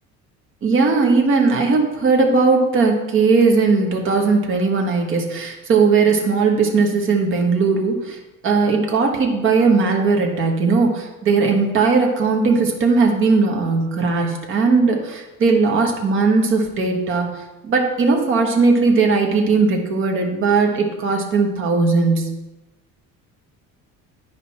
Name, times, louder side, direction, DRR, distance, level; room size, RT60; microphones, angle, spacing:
voice 1, 0.6-17.3 17.6-22.3, right 4 dB, 40° right, 2 dB, 1.4 m, -18 dB
10.5 x 5.0 x 4.3 m, 1.0 s
cardioid pair, 165°, 31 cm